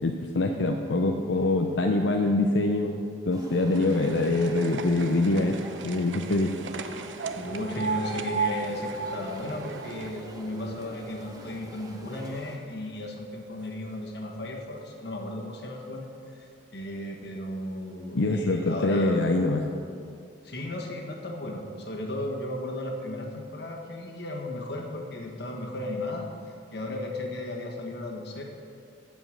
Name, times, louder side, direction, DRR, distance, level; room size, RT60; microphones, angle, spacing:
voice 1, 0.0-5.6 5.8-6.6 18.1-19.6, left 2 dB, 85° left, 3 dB, 0.6 m, -24 dB
sound 1, 3.3-12.6, equal, 20° right, 1.0 m, -46 dB
sound 2, 3.7-12.0 12.4-13.2 13.9-14.1 14.3-14.4 14.7-14.8 15.6-15.8 16.4-16.5 17.1-17.2 17.7-17.8, right 5 dB, 85° right, 0.6 m, -36 dB
voice 2, 7.3-16.1 16.3-19.3 20.4-28.4, left 1 dB, 60° left, 0 dB, 1.5 m, -35 dB
15.0 x 5.3 x 6.4 m, 2.4 s
head